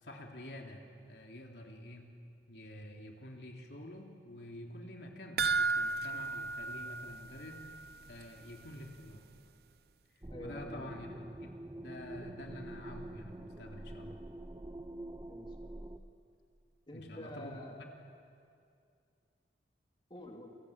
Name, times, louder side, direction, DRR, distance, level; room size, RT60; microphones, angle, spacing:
voice 1, 0.0-2.1 2.5-7.6 8.1-9.2 10.4-11.5 11.8-14.2 16.9-17.6, left 1 dB, 70° left, 1 dB, 3.1 m, -48 dB
sound 1, 5.4-7.9 8.2-8.3 8.7-8.8, right 4 dB, 60° right, 0.7 m, -34 dB
sound 2, 10.2-16.0, right 1 dB, 20° right, 0.6 m, -46 dB
voice 2, 10.3-10.9 15.3-16.1 16.9-17.8 20.1-20.5, equal, 25° left, 1 dB, 2.8 m, -48 dB
30.0 x 23.0 x 8.6 m, 2.4 s
head